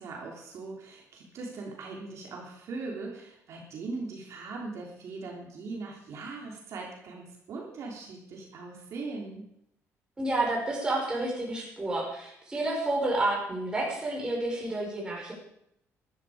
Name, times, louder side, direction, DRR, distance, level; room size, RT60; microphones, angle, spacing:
voice 1, 0.0-9.5, right 3 dB, 60° right, -1 dB, 3.4 m, -40 dB
voice 2, 10.2-15.3, right 2 dB, 15° right, -2 dB, 5.2 m, -30 dB
14.5 x 12.5 x 5.1 m, 0.77 s
cardioid pair, 135°, 6 cm